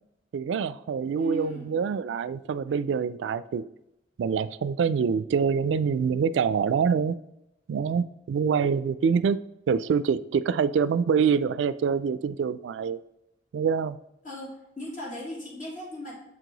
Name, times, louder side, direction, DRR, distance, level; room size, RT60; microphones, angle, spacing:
voice 1, 0.3-3.6 4.2-7.2 7.7-9.4 9.7-13.0 13.5-14.0, right 6 dB, 85° right, 16 dB, 0.3 m, -25 dB
voice 2, 1.2-1.7 14.2-16.1, equal, 45° left, -4 dB, 2.6 m, -37 dB
7.4 x 4.7 x 3.9 m, 0.85 s
head